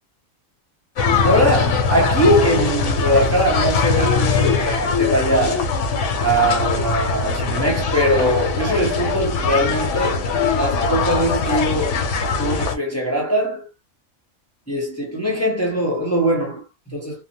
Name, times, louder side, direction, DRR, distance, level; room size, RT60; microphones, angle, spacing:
sound 1, 1.0-12.7, left 4 dB, 65° left, 0.9 m, -21 dB
voice 1, 1.2-5.7 6.2-10.2 10.5-12.1 12.4-13.7 14.7-17.2, equal, 15° left, 0.6 m, -21 dB
2.9 x 2.1 x 2.7 m
omnidirectional pair, 1.4 m